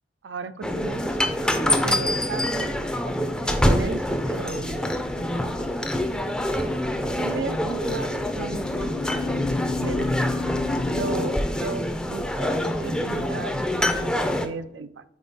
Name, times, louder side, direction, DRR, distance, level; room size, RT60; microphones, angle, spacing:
voice 1, 0.2-2.7 3.4-4.8 7.0-8.9 9.2-10.1 10.9-13.6 13.9-15.0, right 4 dB, 80° right, 13 dB, 0.4 m, -35 dB
sound 1, 0.6-14.5, left 1 dB, 5° left, 0.4 m, -26 dB
sound 2, 1.3-1.7 7.7-11.3, left 4 dB, 55° left, 0.5 m, -32 dB
sound 3, 2.9-8.3, left 2 dB, 75° left, 1.1 m, -43 dB
5.1 x 4.5 x 4.1 m, 0.80 s
head